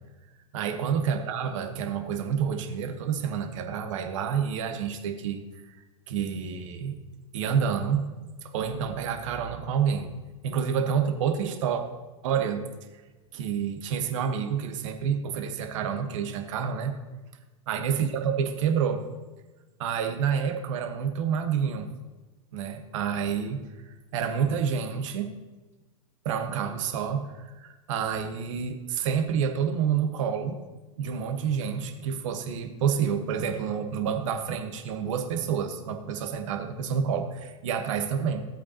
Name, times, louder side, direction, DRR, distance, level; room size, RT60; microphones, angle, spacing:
voice 1, 0.5-7.0 7.3-10.1 10.4-11.8 12.2-12.6 13.3-16.9 17.7-19.0 19.8-21.9 22.5-25.3 26.2-30.6 31.0-38.4, right 7 dB, 65° right, 6 dB, 1.3 m, -28 dB
15.0 x 8.1 x 2.9 m, 1.2 s
hypercardioid pair, 105°, 18 cm